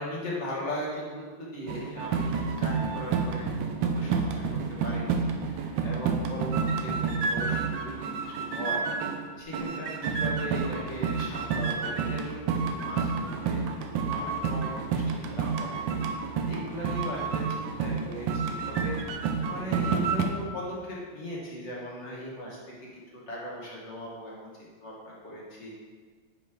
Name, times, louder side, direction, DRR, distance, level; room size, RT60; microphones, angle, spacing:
voice 1, 0.0-2.3 2.6-3.4 3.8-4.3 4.8-8.9 9.4-13.6 14.1-15.8 16.4-22.6 22.9-25.7, left 1 dB, 35° left, -5 dB, 1.5 m, -38 dB
sound 1, 1.7-9.3 9.5-20.2, right 5 dB, 75° right, 1.3 m, -29 dB
5.8 x 5.2 x 4.9 m, 1.5 s
omnidirectional pair, 2.3 m